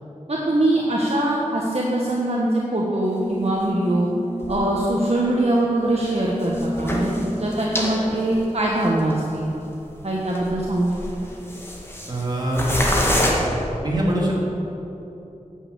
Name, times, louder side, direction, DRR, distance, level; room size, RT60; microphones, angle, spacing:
voice 1, 0.3-4.1 4.5-9.5 10.0-10.9, right 1 dB, 50° right, -4 dB, 1.3 m, -22 dB
sound 1, 1.7-8.7, left 1 dB, 65° left, 3.0 m, -31 dB
sound 2, 3.4-3.5 4.4-4.6 5.0-5.1 6.4-7.9 8.2-8.3 9.0-9.1 9.5-9.7 10.3-10.6 10.9-12.2 12.5-13.3, left 1 dB, 20° left, 1.9 m, -25 dB
voice 2, 12.0-12.7 13.8-14.4, right 1 dB, 30° right, -5 dB, 3.0 m, -23 dB
9.8 x 6.7 x 8.3 m, 2.9 s
wide cardioid pair, 70°, 13 cm